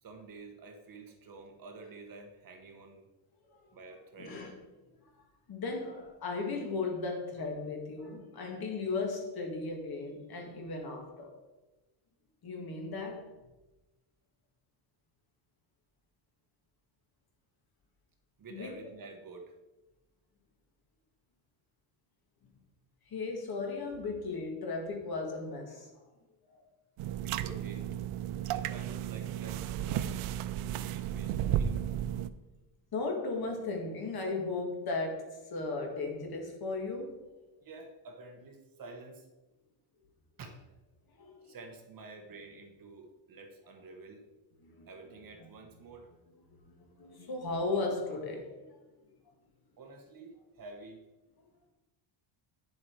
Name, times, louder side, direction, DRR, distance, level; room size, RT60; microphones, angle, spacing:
voice 1, 0.0-3.1 3.7-4.4 18.4-19.5 27.2-27.9 28.5-30.2 30.7-31.8 37.6-39.3 40.4-40.6 41.4-44.2 44.9-46.1 49.8-51.0, right 3 dB, 45° right, 4 dB, 1.3 m, -49 dB
voice 2, 4.2-4.5 5.1-11.3 12.4-13.3 18.5-18.8 23.1-26.0 26.5-26.7 32.9-37.1 41.1-41.6 44.6-44.9 46.5-48.8, left 3 dB, 45° left, 2 dB, 2.1 m, -36 dB
sound 1, 27.0-32.3, right 11 dB, 90° right, 0.6 m, -34 dB
9.7 x 7.2 x 4.7 m, 1.1 s
cardioid pair, 160°, 49 cm